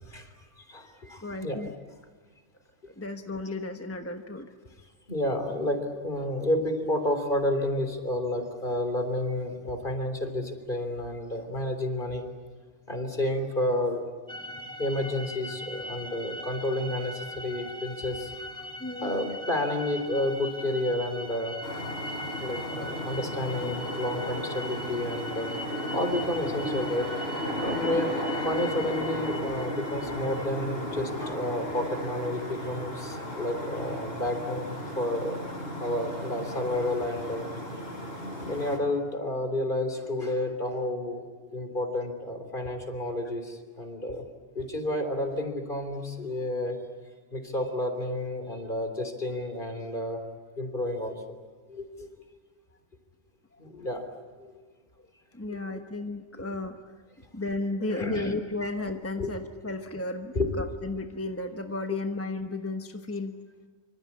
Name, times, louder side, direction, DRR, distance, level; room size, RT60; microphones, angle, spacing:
voice 1, 0.1-1.6 5.1-12.3 12.9-14.0 14.8-18.5 19.0-21.8 22.4-25.5 25.9-27.1 27.6-35.5 35.8-37.5 38.4-41.2 41.5-44.2 44.6-46.8 47.3-50.2 50.6-51.4 51.7-52.1 53.6-54.1 54.4-54.5 55.5-55.7 56.4-56.6 57.5-57.6 57.9-58.3 58.6-58.7 59.2-59.3 60.3-60.7 61.9-62.0, left 1 dB, 50° left, 7 dB, 3.7 m, -31 dB
voice 2, 1.2-1.7 3.0-4.5 18.8-19.3 27.8-28.0 53.5-53.6 55.3-56.9 57.3-63.3, left 2 dB, 15° left, 5 dB, 1.1 m, -34 dB
sound 1, 14.3-30.5, left 1 dB, 20° right, 2.0 m, -40 dB
sound 2, 21.6-38.8, equal, 65° left, 5.7 m, -35 dB
26.0 x 26.0 x 8.6 m, 1.5 s
omnidirectional pair, 1.1 m